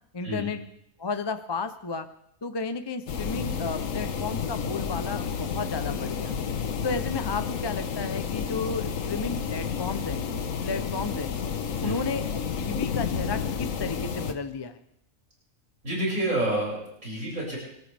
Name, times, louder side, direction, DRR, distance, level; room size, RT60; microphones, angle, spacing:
voice 1, 0.1-0.6 1.0-2.1 2.4-6.3 6.8-10.3 10.6-11.3 11.8-14.8, left 4 dB, 30° left, 9 dB, 0.5 m, -33 dB
sound 1, 3.1-14.3, left 6 dB, 70° left, 1.4 m, -31 dB
voice 2, 15.8-17.6, right 1 dB, 75° right, -5 dB, 6.9 m, -28 dB
26.5 x 13.5 x 3.5 m, 0.75 s
omnidirectional pair, 1.4 m